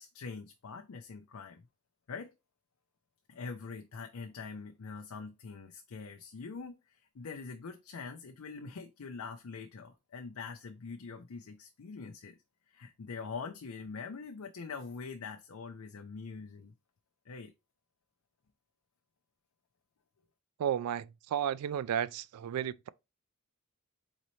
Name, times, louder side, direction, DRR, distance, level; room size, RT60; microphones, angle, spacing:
voice 1, 0.0-1.7 2.1-2.3 3.3-12.4 12.7-16.7 17.3-17.5, left 4 dB, 70° left, 0.5 m, -44 dB
voice 2, 20.6-22.9, right 9 dB, 90° right, 0.3 m, -33 dB
4.1 x 4.0 x 3.1 m
head